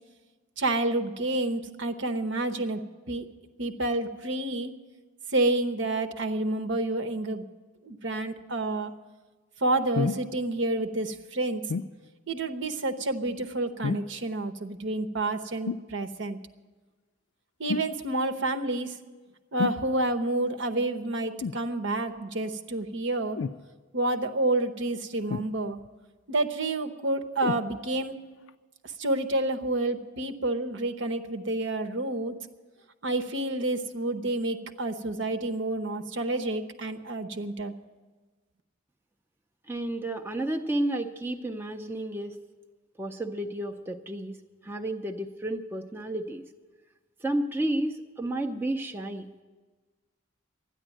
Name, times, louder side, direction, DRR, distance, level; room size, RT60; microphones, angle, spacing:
voice 1, 0.6-2.8 3.1-3.3 3.6-4.7 5.3-7.4 7.8-8.9 9.6-11.6 12.3-16.4 17.6-18.9 19.5-23.4 23.9-25.8 26.3-28.2 29.0-32.4 33.0-37.7, right 2 dB, 65° right, 7 dB, 0.9 m, -29 dB
sound 1, 9.9-10.3 11.7-11.9 13.8-14.2 15.7-15.9 17.7-17.9 19.6-19.8 21.4-21.7 23.4-23.6 25.3-25.9 27.4-27.7 28.5-28.6, left 5 dB, 70° left, 0.4 m, -30 dB
voice 2, 39.7-42.4 43.0-44.4 44.6-46.4 47.2-49.4, right 1 dB, 10° right, 4 dB, 0.5 m, -31 dB
12.5 x 10.0 x 9.1 m, 1.3 s
head